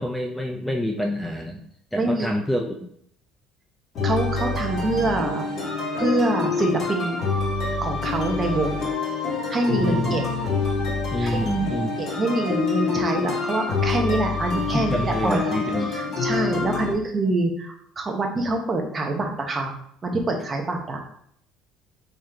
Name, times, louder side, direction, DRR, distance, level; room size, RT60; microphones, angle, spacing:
voice 1, 0.0-1.6 1.9-2.8 9.7-10.2 11.1-12.0 14.7-16.2, equal, 5° left, 2 dB, 0.4 m, -27 dB
voice 2, 1.9-2.3 4.0-5.4 5.9-7.2 7.8-8.9 9.5-10.2 11.2-11.4 12.0-15.6 15.9-19.7 20.0-21.0, right 2 dB, 25° right, 3 dB, 1.0 m, -25 dB
sound 1, 3.9-16.9, left 4 dB, 45° left, 1.9 m, -26 dB
3.8 x 3.1 x 4.3 m, 0.68 s
cardioid pair, 120°, 0 cm